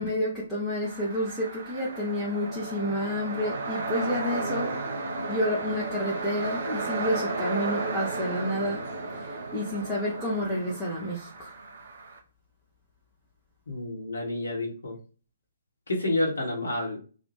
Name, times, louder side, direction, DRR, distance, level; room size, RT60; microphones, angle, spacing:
voice 1, 0.0-4.8 5.3-8.8 9.1-11.5, left 1 dB, 10° left, -6 dB, 0.6 m, -30 dB
sound 1, 0.8-12.2, right 3 dB, 50° right, 0.8 m, -34 dB
voice 2, 13.7-15.0 15.9-17.0, left 2 dB, 65° left, 0 dB, 0.9 m, -29 dB
2.5 x 2.2 x 3.0 m, 0.36 s
figure-of-eight pair, 130°, 0 cm